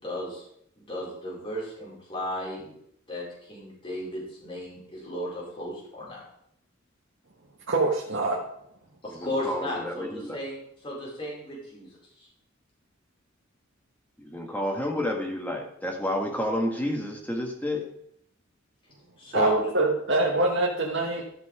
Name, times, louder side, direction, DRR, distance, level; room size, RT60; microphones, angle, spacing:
voice 1, 0.0-0.4 0.9-2.7 3.1-6.2 9.0-11.9 12.2-12.3 19.2-19.6, equal, 25° left, -6 dB, 4.6 m, -34 dB
voice 2, 7.7-8.4 19.3-21.2, right 2 dB, 60° right, -2 dB, 1.3 m, -24 dB
voice 3, 9.1-10.4 14.2-17.8, left 1 dB, 10° left, 0 dB, 1.7 m, -30 dB
13.0 x 5.9 x 4.9 m, 0.72 s
head